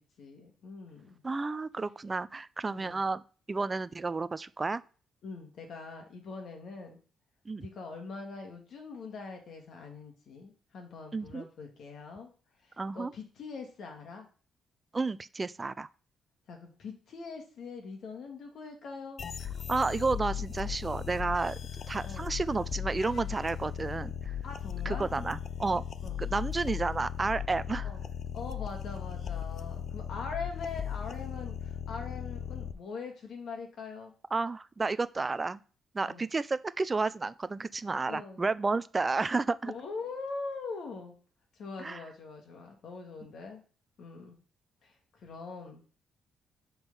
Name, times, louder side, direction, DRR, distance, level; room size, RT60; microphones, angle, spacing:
voice 1, 0.0-1.2 2.7-3.0 5.2-7.0 7.6-12.3 12.6-14.3 16.5-19.2 22.0-22.3 24.4-25.1 26.0-26.2 27.8-28.1 28.3-34.1 36.0-36.3 38.1-38.4 39.6-41.2 41.6-43.6 44.0-44.4 44.8-45.8, left 4 dB, 65° left, 3 dB, 1.7 m, -42 dB
voice 2, 1.2-3.2 3.5-4.8 7.5-7.7 11.1-11.5 12.8-13.1 14.9-15.9 19.7-21.6 21.9-24.3 24.9-25.8 26.2-27.9 34.3-35.6 35.9-39.7 41.8-42.0, right 3 dB, 25° right, 16 dB, 0.4 m, -31 dB
sound 1, 19.2-32.7, left 9 dB, 50° left, 0.4 m, -37 dB
6.1 x 3.7 x 5.3 m, 0.39 s
cardioid pair, 90°, 0 cm